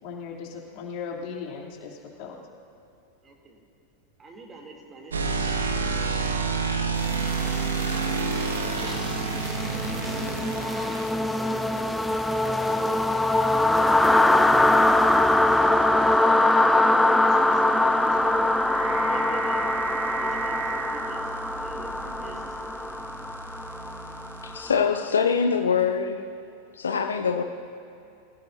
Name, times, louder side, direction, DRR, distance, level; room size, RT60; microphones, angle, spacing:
voice 1, 0.0-2.4, left 5 dB, 50° left, 3.2 m, -37 dB
voice 2, 3.2-3.6 4.2-5.6 8.6-11.8 12.2-14.2 17.2-18.5 19.1-23.0, right 2 dB, 25° right, 3.1 m, -46 dB
sound 1, 5.1-11.1 13.6-24.6, right 4 dB, 75° right, 1.3 m, -32 dB
sound 2, 7.1-24.9, left 2 dB, 5° left, 0.6 m, -23 dB
sound 3, 12.9-13.2 14.1-22.3, right 12 dB, 45° right, 0.6 m, -38 dB
voice 3, 24.4-26.3 26.7-27.4, left 6 dB, 75° left, 0.6 m, -24 dB
25.5 x 16.0 x 2.8 m
figure-of-eight pair, 90°, 0 cm